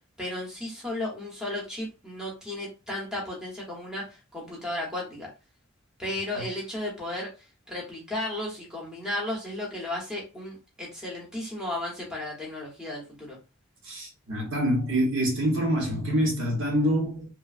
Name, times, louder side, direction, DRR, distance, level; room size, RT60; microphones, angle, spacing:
voice 1, 0.2-5.3 6.0-7.3 7.7-13.4, left 1 dB, 5° right, 0.9 m, -34 dB
voice 2, 13.9-17.3, equal, 65° right, 1.0 m, -26 dB
3.1 x 2.2 x 2.4 m
head